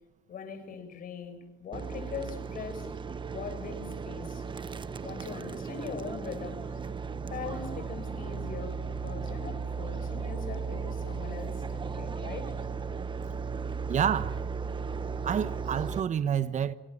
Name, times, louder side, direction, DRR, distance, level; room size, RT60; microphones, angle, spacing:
voice 1, 0.3-3.0 3.3-4.4 5.0-6.8 7.3-12.7, left 6 dB, 55° left, 6.5 m, -41 dB
sound 1, 1.7-16.0, right 5 dB, 30° right, 1.3 m, -36 dB
voice 2, 13.9-14.4 15.2-16.7, right 8 dB, 45° right, 1.2 m, -28 dB
27.5 x 24.5 x 7.5 m
cardioid pair, 110°, 17 cm